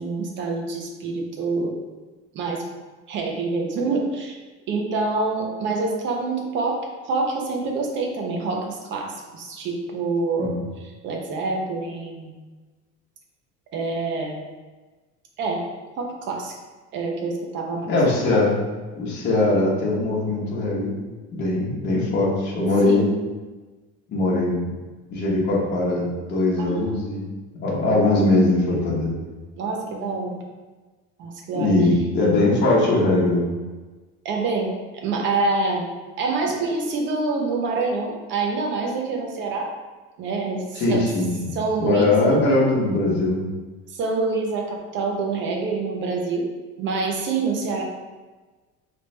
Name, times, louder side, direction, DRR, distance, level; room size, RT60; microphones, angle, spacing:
voice 1, 0.0-1.7 2.3-2.6 3.1-4.4 4.7-12.4 13.7-14.4 15.4-15.7 16.0-16.5 16.9-17.9 22.8-23.1 26.6-27.0 29.6-30.4 31.2-31.8 34.2-35.9 36.2-39.7 40.2-41.0 41.5-42.4 43.9-46.5 46.8-47.8, right 3 dB, 40° right, 1 dB, 0.7 m, -26 dB
voice 2, 17.9-18.6 18.9-20.9 21.3-23.1 24.1-24.6 25.1-27.2 27.6-29.2 31.5-33.5 40.8-43.5, left 2 dB, 35° left, -4 dB, 1.1 m, -21 dB
3.9 x 3.4 x 3.3 m, 1.3 s
cardioid pair, 180°, 29 cm